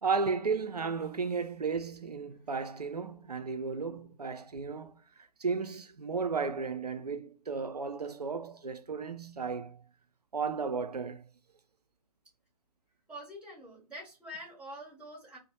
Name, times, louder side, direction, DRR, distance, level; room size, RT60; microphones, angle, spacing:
voice 1, 0.0-9.8 10.3-11.3, right 5 dB, 80° right, 0.5 m, -34 dB
voice 2, 13.1-15.4, equal, 5° right, 0.9 m, -45 dB
2.9 x 2.1 x 4.0 m
figure-of-eight pair, 130°, 20 cm